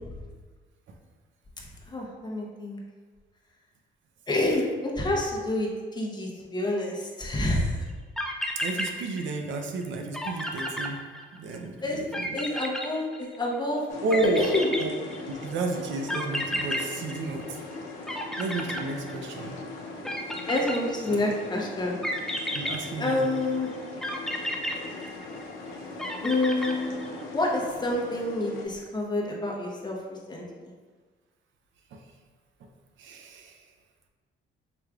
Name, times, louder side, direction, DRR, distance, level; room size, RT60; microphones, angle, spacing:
voice 1, 1.9-2.8 4.3-7.8 11.8-12.0 12.3-13.9 14.4-14.7 20.5-22.0 23.0-23.7 26.2-26.9 27.3-30.7, left 2 dB, 20° left, -2 dB, 0.9 m, -28 dB
sound 1, 7.9-8.0 8.2-9.5 9.8-9.9 10.1-11.6 12.1-13.5 14.1-15.4 16.1-17.8 18.1-19.5 20.0-21.3 22.0-23.5 24.0-25.5 26.0-27.2, equal, ahead, 0.4 m, -33 dB
voice 2, 8.6-11.0 11.3-12.4 14.0-14.4 14.8-14.9 15.3-17.6 18.3-19.6 21.1-21.2 22.5-23.3 31.9-32.0 32.6-32.7 33.0-33.6, right 3 dB, 70° right, 4 dB, 0.6 m, -32 dB
sound 2, 13.9-28.6, left 3 dB, 90° left, 0.6 m, -40 dB
4.9 x 3.1 x 2.3 m, 1.4 s
cardioid pair, 90°, 20 cm